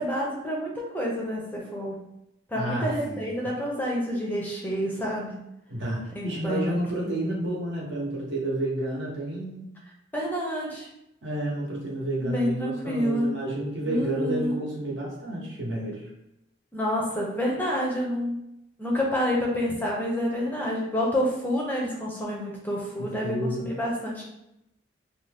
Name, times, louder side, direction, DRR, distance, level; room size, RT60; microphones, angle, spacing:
voice 1, 0.0-2.1 2.5-5.5 6.1-7.1 10.1-10.9 12.2-13.3 13.8-14.7 16.7-18.4 18.8-24.2, equal, 10° left, -2 dB, 0.4 m, -28 dB
voice 2, 2.5-3.5 5.7-9.7 11.2-16.0 23.0-23.7, right 1 dB, 80° right, -3 dB, 0.9 m, -30 dB
2.6 x 2.2 x 3.3 m, 0.86 s
head